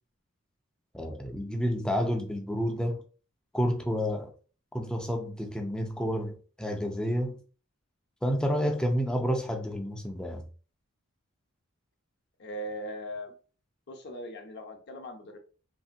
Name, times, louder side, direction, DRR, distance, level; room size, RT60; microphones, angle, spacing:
voice 1, 0.9-3.0 3.5-4.3 4.7-7.4 8.2-10.4, equal, 5° left, 0.4 m, -30 dB
voice 2, 12.4-13.3 13.9-15.4, equal, 50° left, 0.6 m, -39 dB
2.9 x 2.6 x 2.4 m
head